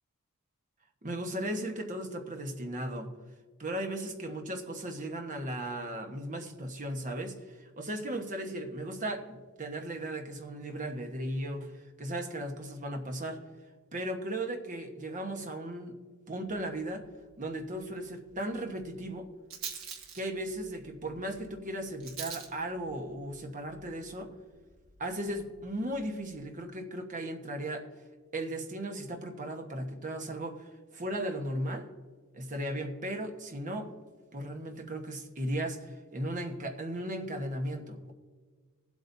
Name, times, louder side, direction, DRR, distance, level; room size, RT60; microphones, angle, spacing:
voice 1, 1.0-3.1 3.6-13.4 13.9-16.0 16.3-17.1 17.4-19.3 20.1-24.3 25.0-27.9 28.3-31.9 32.3-33.9 34.3-38.1, right 1 dB, 35° right, 4 dB, 1.3 m, -36 dB
Rattle, 16.5-26.4, right 6 dB, 70° right, 1.6 m, -48 dB
19.5 x 8.1 x 2.7 m, 1.5 s
head